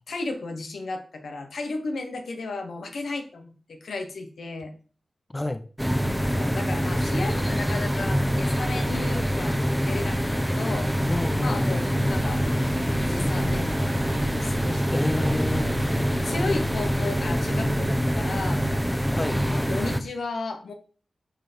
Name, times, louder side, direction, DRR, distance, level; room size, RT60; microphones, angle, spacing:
voice 1, 0.1-4.7 6.3-11.1 11.4-15.7 16.1-18.8 19.5-20.7, left 3 dB, 80° left, 1.1 m, -34 dB
voice 2, 5.3-5.6 11.1-12.1 14.9-16.0 19.1-19.4, left 1 dB, 25° left, 0.6 m, -30 dB
sound 1, 5.8-20.0, equal, ahead, 0.9 m, -25 dB
sound 2, 12.0-18.0, right 2 dB, 70° right, 1.8 m, -37 dB
9.0 x 3.5 x 4.4 m
cardioid pair, 40°, 0 cm